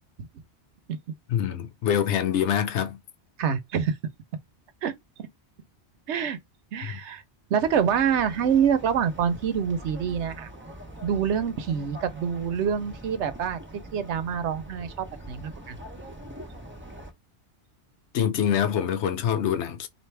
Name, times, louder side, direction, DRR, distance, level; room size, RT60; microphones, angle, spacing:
voice 1, 1.3-3.0 6.8-7.0 18.1-19.9, left 9 dB, 90° left, 1.0 m, -25 dB
voice 2, 3.4-3.9 4.8-4.9 6.1-6.4 6.7-7.2 7.5-10.5 11.0-13.6 13.9-15.8, right 7 dB, 90° right, 1.0 m, -26 dB
sound 1, 7.6-17.1, right 1 dB, 10° right, 0.8 m, -43 dB
4.3 x 2.5 x 3.3 m
omnidirectional pair, 1.1 m